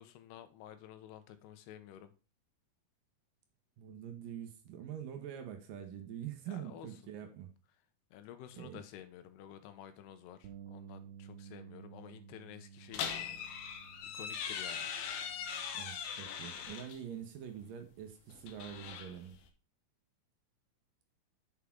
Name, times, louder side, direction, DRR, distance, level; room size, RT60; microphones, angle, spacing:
voice 1, 0.0-2.1 6.5-6.9 8.1-13.9 14.1-14.9, left 11 dB, 85° left, 3.0 m, -52 dB
voice 2, 3.8-7.5 8.6-8.8 15.7-19.4, right 9 dB, 65° right, 2.5 m, -45 dB
Bass guitar, 10.4-16.7, right 9 dB, 90° right, 3.0 m, -54 dB
sound 1, 12.9-17.0 18.3-19.5, left 7 dB, 70° left, 2.6 m, -41 dB
7.3 x 6.6 x 3.7 m
omnidirectional pair, 4.6 m